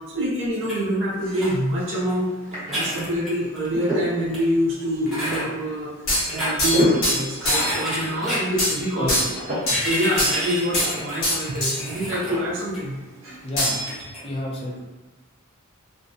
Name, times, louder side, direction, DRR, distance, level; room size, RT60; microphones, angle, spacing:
voice 1, 0.1-2.3 2.7-5.9 6.2-9.1 9.7-13.4, equal, 60° right, -6 dB, 0.5 m, -25 dB
sound 1, 0.6-0.8 1.3-1.5 2.1-2.2 2.5-3.8 4.3-4.4 5.1-5.4 6.1-6.5 7.4-8.4 9.6-12.3 12.7-12.8 13.8-14.2, equal, ahead, 0.9 m, -29 dB
sound 2, 1.1-14.0, right 1 dB, 30° right, 0.9 m, -34 dB
sound 3, 6.1-7.8 8.6-8.8 9.1-9.9 10.2-10.9 11.2-11.8 13.6-14.1, left 1 dB, 65° left, 1.0 m, -23 dB
voice 2, 9.0-9.4 13.4-14.0 14.2-14.8, left 1 dB, 25° left, -3 dB, 0.5 m, -30 dB
2.5 x 2.1 x 2.5 m, 1.2 s
head